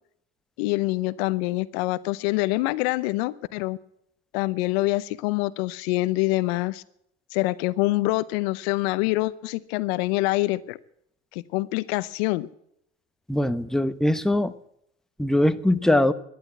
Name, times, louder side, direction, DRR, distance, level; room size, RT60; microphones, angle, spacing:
voice 1, 0.6-3.8 4.3-6.8 7.3-10.8 11.3-12.5, left 20 dB, 75° left, 17 dB, 0.7 m, -25 dB
voice 2, 13.3-14.5 15.2-16.1, left 1 dB, ahead, 11 dB, 1.0 m, -21 dB
12.5 x 10.5 x 9.1 m, 0.75 s
hypercardioid pair, 70°, 32 cm